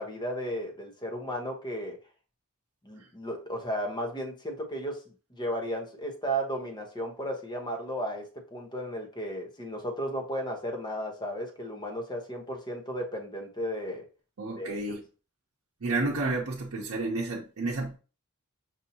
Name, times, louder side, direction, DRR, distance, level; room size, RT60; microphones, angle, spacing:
voice 1, 0.0-2.0 2.8-5.0 5.3-8.2 8.5-14.0 14.6-15.0, equal, 20° left, 0.9 m, -34 dB
voice 2, 14.4-15.0 15.8-18.0, right 2 dB, 70° right, 0.7 m, -31 dB
5.6 x 2.7 x 2.7 m
head